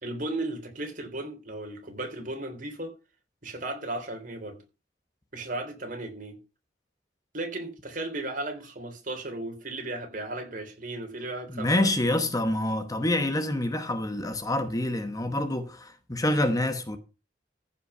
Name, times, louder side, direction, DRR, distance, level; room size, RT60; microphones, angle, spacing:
voice 1, 0.0-2.9 3.4-4.6 5.3-6.4 7.3-12.2, right 2 dB, 50° right, 3.5 m, -35 dB
voice 2, 11.5-17.0, left 1 dB, 20° left, 1.0 m, -27 dB
14.5 x 5.7 x 5.7 m
head